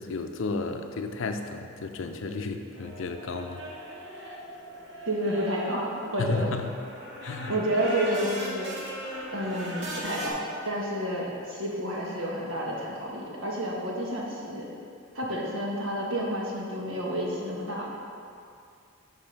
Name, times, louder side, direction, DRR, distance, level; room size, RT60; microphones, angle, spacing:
voice 1, 0.0-3.6 6.2-6.7 7.2-7.5, left 3 dB, 65° left, 5 dB, 0.5 m, -32 dB
sound 1, 2.7-10.3, equal, 55° right, 1.1 m, -39 dB
voice 2, 5.1-5.9 6.1-6.5 7.5-8.7 9.3-14.7 15.1-17.8, right 1 dB, 70° right, -3 dB, 1.4 m, -30 dB
5.9 x 5.2 x 5.8 m, 2.5 s
head